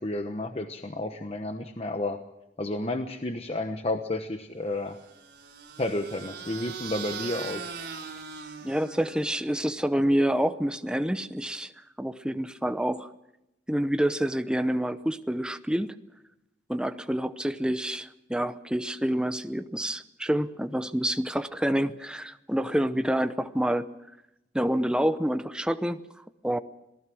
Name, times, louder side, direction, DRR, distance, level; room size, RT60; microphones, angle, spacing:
voice 1, 0.0-2.2 2.6-5.0 5.8-7.7, left 2 dB, 35° left, 7 dB, 1.0 m, -31 dB
sound 1, 4.9-9.5, right 5 dB, 70° right, 4.9 m, -40 dB
voice 2, 8.6-11.7 12.0-13.1 13.7-15.9 16.7-23.9 24.5-26.0 26.4-26.6, equal, 5° right, 10 dB, 0.8 m, -27 dB
27.0 x 18.5 x 6.3 m, 0.89 s
head